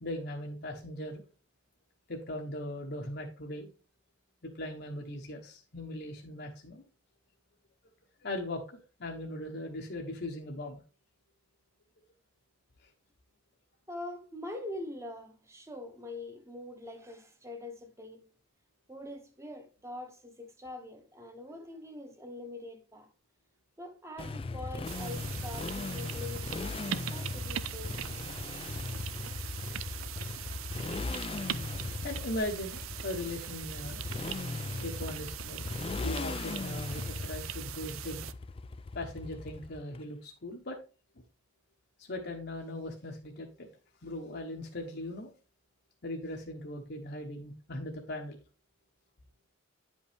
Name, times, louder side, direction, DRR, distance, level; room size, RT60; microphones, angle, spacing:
voice 1, 0.0-1.2 2.1-3.7 4.4-6.8 8.2-8.6 9.0-10.8 12.8-12.9 32.0-34.1 34.7-35.7 36.0-38.2 38.9-40.8 42.0-43.7 44.0-45.3 46.0-48.4, left 1 dB, 50° left, 0.9 m, -39 dB
voice 2, 13.9-18.3 18.9-23.1 23.8-28.2, left 2 dB, 15° right, 1.0 m, -44 dB
Motorcycle, 24.2-40.0, left 3 dB, 25° left, 0.3 m, -38 dB
sound 1, 24.4-29.9 30.2-37.6, right 1 dB, 60° right, 1.0 m, -57 dB
sound 2, 24.8-38.3, right 12 dB, 75° right, 0.5 m, -41 dB
9.5 x 5.3 x 3.4 m
head